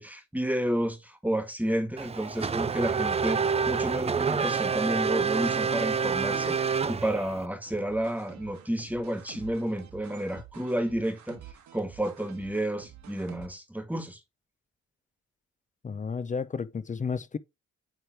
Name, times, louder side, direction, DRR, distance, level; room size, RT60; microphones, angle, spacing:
voice 1, 0.0-11.4 11.7-14.2, right 1 dB, 5° right, 1.5 m, -31 dB
Race car auto racing / Accelerating revving vroom, 2.0-7.5, right 6 dB, 20° right, 0.5 m, -28 dB
sound 1, 7.6-13.5, right 10 dB, 70° right, 1.5 m, -49 dB
voice 2, 15.8-17.4, left 5 dB, 25° left, 0.6 m, -32 dB
9.0 x 3.4 x 4.4 m
cardioid pair, 90°, 30 cm